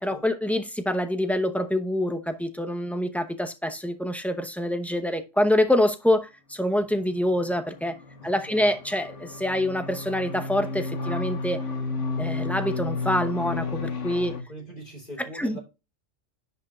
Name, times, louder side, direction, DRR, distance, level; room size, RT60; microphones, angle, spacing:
voice 1, 0.0-8.0 8.2-11.6 12.2-14.4 15.4-15.6, left 1 dB, ahead, 0.7 m, -26 dB
sound 1, 7.4-14.4, left 3 dB, 80° left, 1.5 m, -32 dB
voice 2, 8.2-8.7 14.5-15.6, right 1 dB, 45° left, 3.3 m, -42 dB
10.5 x 5.3 x 2.4 m
omnidirectional pair, 1.2 m